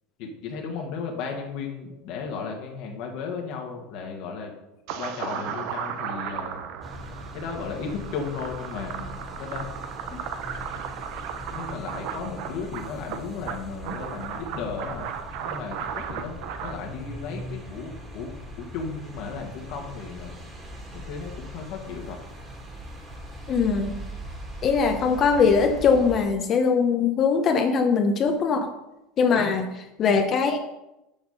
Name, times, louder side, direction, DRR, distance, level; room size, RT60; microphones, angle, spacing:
voice 1, 0.2-4.5 5.0-6.6 7.3-9.1 9.4-9.7 11.5-15.1 15.4-20.4 20.9-22.2 29.3-29.5, left 5 dB, 65° left, 1 dB, 1.6 m, -35 dB
sound 1, 4.9-16.7, right 8 dB, 65° right, 0.8 m, -35 dB
sound 2, 6.8-26.2, equal, 20° right, 2.3 m, -40 dB
voice 2, 23.5-23.9 24.6-28.7 29.2-29.7 30.0-30.6, left 5 dB, 40° left, 5 dB, 0.8 m, -21 dB
7.1 x 6.0 x 5.5 m, 0.93 s
supercardioid pair, 105°, 0 cm